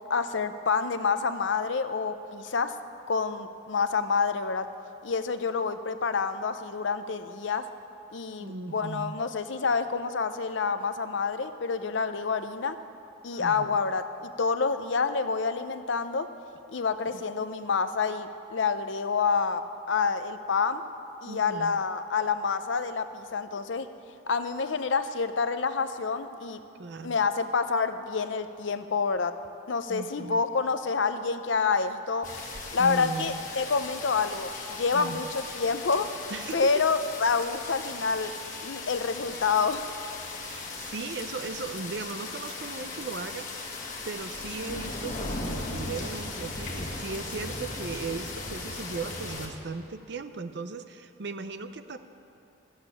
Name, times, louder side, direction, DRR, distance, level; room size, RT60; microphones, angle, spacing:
voice 1, 0.1-2.8 3.1-4.7 5.0-7.7 8.1-12.8 13.2-16.3 16.7-20.8 21.2-23.9 24.3-26.6 27.0-29.3 29.7-32.3 32.7-36.1 36.5-38.3 38.6-39.9, left 5 dB, 70° left, 10 dB, 0.6 m, -28 dB
voice 2, 8.4-9.2 13.4-13.8 21.3-21.7 26.8-27.2 29.9-30.4 32.3-33.4 34.9-35.2 36.3-36.8 40.4-52.0, right 4 dB, 60° right, 10 dB, 0.6 m, -37 dB
sound 1, 32.2-49.5, left 3 dB, 40° left, 1.6 m, -38 dB
13.0 x 7.3 x 8.3 m, 2.7 s
head